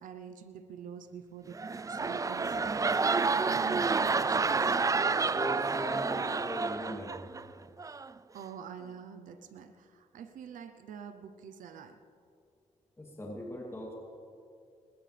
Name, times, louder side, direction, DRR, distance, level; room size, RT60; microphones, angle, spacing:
voice 1, 0.0-2.6 3.0-4.8 8.3-12.0, right 7 dB, 90° right, 9 dB, 0.8 m, -46 dB
sound 1, 1.5-7.4 7.8-8.1, right 4 dB, 25° right, 0.4 m, -29 dB
voice 2, 5.3-7.2 13.0-13.9, left 1 dB, 20° left, -2 dB, 2.8 m, -40 dB
21.0 x 20.0 x 3.4 m, 2.4 s
cardioid pair, 75°, 13 cm